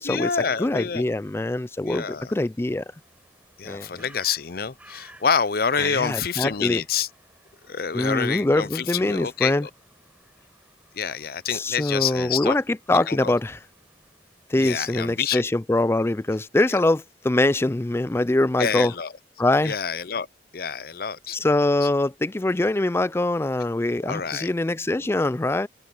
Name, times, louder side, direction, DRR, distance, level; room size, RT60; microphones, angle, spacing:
voice 1, 0.0-1.1 1.8-2.3 3.6-7.1 7.7-9.7 10.9-12.6 13.1-13.3 14.6-15.4 18.6-19.1 19.6-20.3 20.5-21.4 24.0-24.5, left 6 dB, 55° left, 0.7 m, -27 dB
voice 2, 0.6-2.8 3.6-4.0 5.8-6.8 7.9-9.7 11.5-13.6 14.5-18.9 19.4-19.8 21.3-25.7, left 2 dB, 15° left, 0.4 m, -23 dB
sound 1, 2.7-15.1, right 1 dB, 10° right, 4.3 m, -57 dB
head